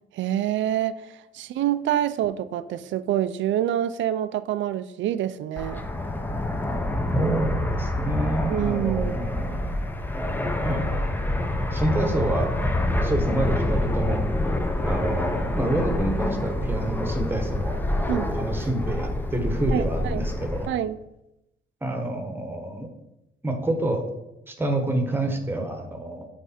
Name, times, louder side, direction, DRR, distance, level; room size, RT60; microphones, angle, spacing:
voice 1, 0.1-5.8 8.5-9.3 18.1-18.3 19.7-20.3 20.7-21.0, right 11 dB, 80° right, 15 dB, 0.4 m, -26 dB
Fixed-wing aircraft airplane, 5.6-20.7, left 1 dB, 10° left, 0.5 m, -27 dB
voice 2, 7.1-9.7 10.6-10.9 11.7-12.5 13.0-14.3 14.8-17.8 18.0-20.7 21.8-22.9 23.4-24.1 24.5-26.3, right 1 dB, 10° right, 5 dB, 1.0 m, -28 dB
8.2 x 3.3 x 4.2 m, 0.89 s
cardioid pair, 120°, 19 cm